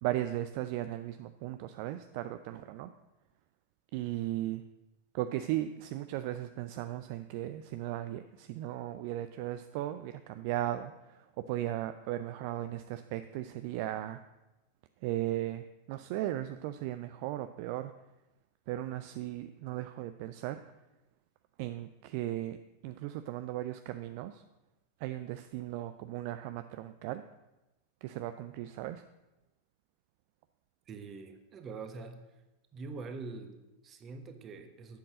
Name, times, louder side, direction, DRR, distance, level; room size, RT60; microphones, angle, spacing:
voice 1, 0.0-2.9 3.9-4.6 5.1-14.2 15.0-17.9 18.7-20.6 21.6-22.6 22.8-24.4 25.0-27.2 28.0-29.1, right 14 dB, 45° right, 10 dB, 0.5 m, -36 dB
voice 2, 30.9-32.2 32.7-35.0, right 4 dB, 30° right, 7 dB, 1.4 m, -44 dB
10.5 x 7.7 x 7.6 m, 1.0 s
figure-of-eight pair, 90°, 0 cm